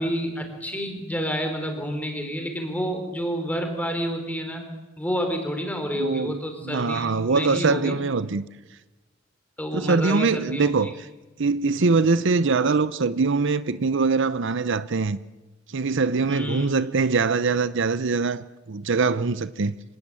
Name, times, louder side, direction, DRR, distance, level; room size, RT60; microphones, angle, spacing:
voice 1, 0.0-4.7 5.0-8.0 9.6-10.9 16.3-16.7, equal, 10° left, 4.4 m, -29 dB
voice 2, 5.9-8.4 9.7-11.1 11.4-15.2 15.7-19.7, right 4 dB, 65° right, 0.7 m, -23 dB
25.5 x 18.5 x 8.9 m
head